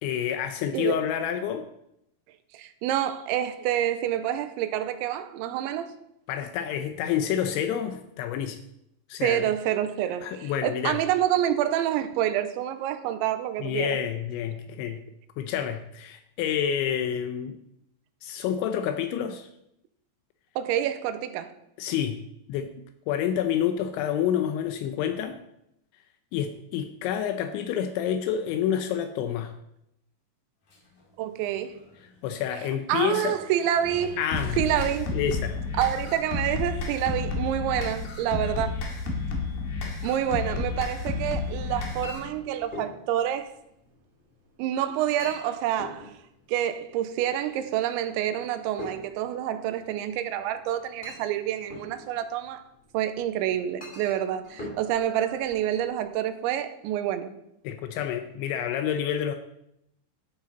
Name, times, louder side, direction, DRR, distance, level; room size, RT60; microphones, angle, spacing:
voice 1, 0.0-1.7 6.3-8.6 9.1-9.5 10.2-11.0 13.6-15.0 15.4-17.6 18.2-19.5 21.8-22.2 22.5-22.7 23.1-25.4 26.3-29.5 32.2-33.4 34.2-34.6 35.1-35.6 57.6-59.4, left 9 dB, 80° left, 3.0 m, -28 dB
voice 2, 2.5-5.9 9.2-14.0 14.9-15.0 20.6-21.5 31.2-31.8 32.9-34.2 34.6-35.1 35.8-38.8 40.0-43.5 44.6-46.1 46.5-52.6 52.9-57.3, right 11 dB, 85° right, 3.1 m, -27 dB
sound 1, 30.7-35.9, left 1 dB, 45° left, 4.7 m, -50 dB
sound 2, 34.3-42.3, left 4 dB, 60° left, 3.5 m, -31 dB
Chink clink, 41.2-56.1, left 1 dB, 15° left, 2.1 m, -46 dB
12.0 x 10.5 x 4.1 m
omnidirectional pair, 5.4 m